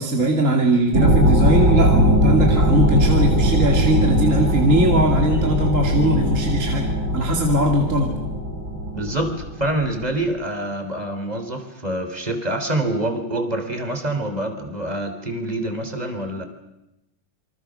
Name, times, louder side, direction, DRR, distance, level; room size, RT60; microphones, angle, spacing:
voice 1, 0.0-8.1, right 1 dB, 35° right, 1 dB, 2.8 m, -20 dB
sound 1, 0.9-10.1, equal, 60° right, 5.0 m, -19 dB
voice 2, 8.9-16.4, right 1 dB, 20° right, 6 dB, 3.5 m, -26 dB
27.5 x 24.5 x 6.4 m, 0.92 s
omnidirectional pair, 2.4 m